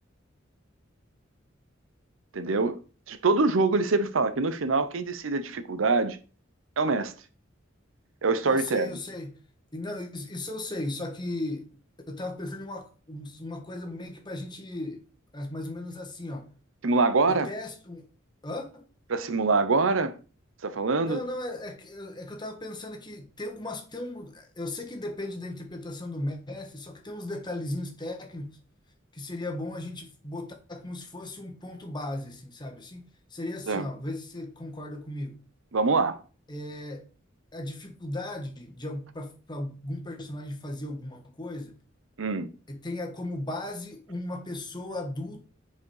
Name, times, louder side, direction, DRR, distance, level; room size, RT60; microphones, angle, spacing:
voice 1, 2.3-2.8 3.1-6.2 6.8-7.1 8.2-8.9 16.8-17.5 19.1-20.1 20.6-21.2 33.7-33.8 35.7-36.2 42.2-42.5, right 3 dB, 85° right, 0.7 m, -24 dB
voice 2, 8.4-9.3 9.7-11.6 12.1-15.0 15.3-16.5 17.3-18.1 18.4-18.9 21.0-28.6 29.1-33.0 33.3-35.4 36.5-37.1 37.5-41.7 42.7-45.5, left 1 dB, 25° left, 1.4 m, -36 dB
7.2 x 4.9 x 4.8 m
head